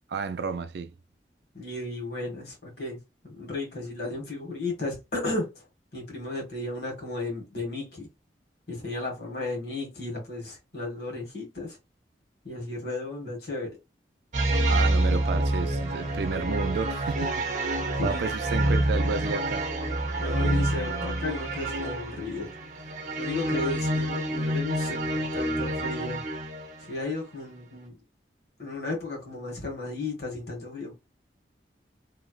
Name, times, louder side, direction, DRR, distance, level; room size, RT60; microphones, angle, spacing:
voice 1, 0.1-0.9 14.7-19.6, right 4 dB, 70° right, 0.4 m, -32 dB
voice 2, 1.5-5.6 5.9-8.1 8.7-11.8 12.4-13.7 17.9-18.3 20.2-22.5 23.2-26.2 26.9-28.0 28.6-30.9, left 2 dB, 65° left, 1.6 m, -34 dB
sound 1, 14.3-26.9, right 1 dB, 45° right, 0.7 m, -27 dB
3.2 x 2.8 x 2.3 m
head